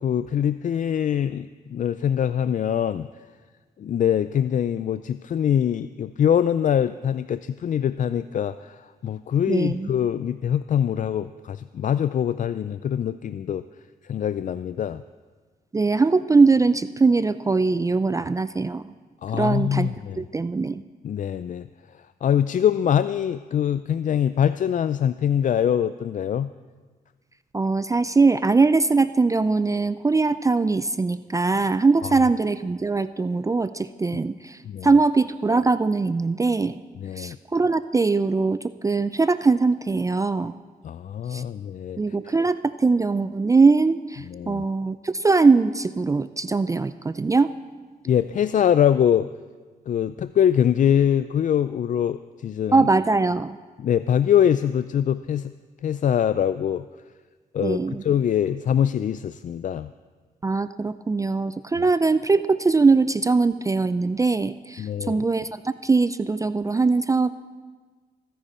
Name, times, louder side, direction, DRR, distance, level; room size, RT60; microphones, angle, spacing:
voice 1, 0.0-3.1 3.8-8.8 9.0-13.6 14.1-15.0 19.2-20.2 21.0-21.7 22.2-26.5 34.7-35.0 37.0-37.4 40.8-42.0 42.2-42.3 44.3-44.6 48.1-49.3 49.9-52.2 52.4-52.9 53.8-55.5 55.8-56.9 57.5-59.9 64.8-65.2, left 9 dB, 55° left, 13 dB, 0.4 m, -23 dB
voice 2, 9.5-9.9 15.7-18.8 19.3-20.8 27.5-36.8 37.2-40.5 41.3-41.4 42.0-47.5 52.7-53.6 57.6-58.0 60.4-67.3, right 4 dB, 20° right, 13 dB, 0.4 m, -21 dB
24.5 x 10.0 x 4.3 m, 1.4 s
cardioid pair, 80°, 16 cm